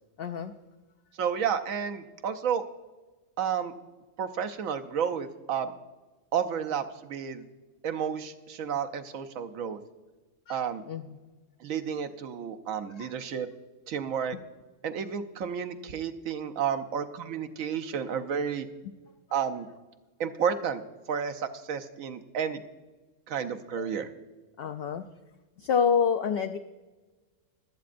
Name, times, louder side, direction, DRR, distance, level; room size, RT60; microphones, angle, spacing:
voice 1, 0.2-0.5 10.5-10.6 10.9-11.2 13.0-13.1 23.8-23.9 24.6-25.0 25.6-26.6, left 6 dB, 60° left, 6 dB, 0.6 m, -27 dB
voice 2, 1.2-2.6 3.4-3.7 4.2-5.7 6.3-7.5 7.8-9.8 10.5-10.8 11.6-13.5 13.9-14.4 14.8-18.7 19.3-19.7 20.2-20.8 21.1-22.6 23.3-24.1, right 7 dB, 80° right, 9 dB, 1.2 m, -31 dB
24.0 x 8.3 x 2.5 m, 1.2 s
omnidirectional pair, 1.4 m